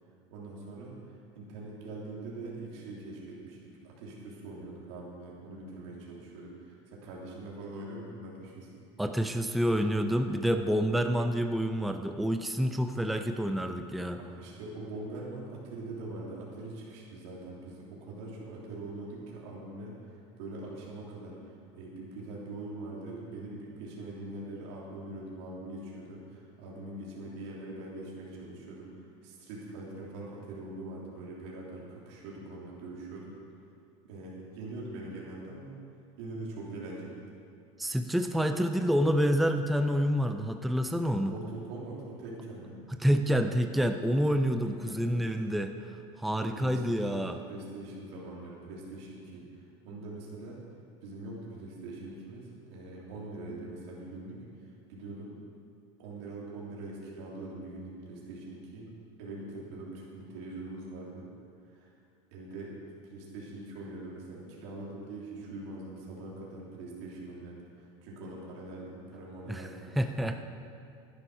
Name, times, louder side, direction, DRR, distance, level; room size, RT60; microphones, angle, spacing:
voice 1, 0.3-8.8 14.2-33.3 34.0-35.7 36.2-37.3 41.1-42.8 44.7-45.4 46.4-50.6 51.0-55.3 56.0-58.9 59.2-61.3 61.6-61.9 62.3-70.3, right 2 dB, 80° right, -5 dB, 3.2 m, -43 dB
voice 2, 9.0-14.2 37.8-41.3 43.0-45.7 46.2-47.4 69.5-69.6 70.0-70.4, equal, ahead, 7 dB, 0.4 m, -28 dB
12.0 x 10.5 x 5.6 m, 2.4 s
supercardioid pair, 150°, 14 cm